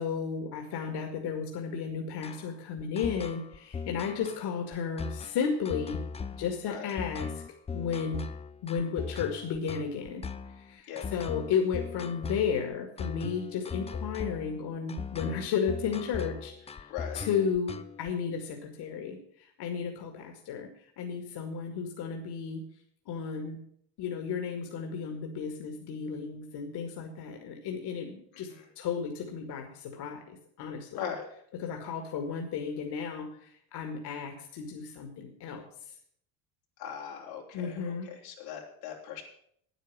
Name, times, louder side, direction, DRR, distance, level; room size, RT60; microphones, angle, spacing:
voice 1, 0.0-6.0 6.3-7.4 7.7-8.2 8.6-10.2 10.5-16.9 17.1-20.7 21.0-22.6 23.1-23.6 24.0-28.5 28.8-31.0 31.6-35.7 37.5-38.1, left 6 dB, 55° left, 3 dB, 2.1 m, -33 dB
sound 1, 2.2-18.1, left 5 dB, 15° left, 0.5 m, -39 dB
voice 2, 16.9-17.2 28.3-28.6 30.9-31.3 36.8-39.2, left 8 dB, 85° left, -1 dB, 3.3 m, -40 dB
9.2 x 9.2 x 7.4 m, 0.67 s
supercardioid pair, 95°, 46 cm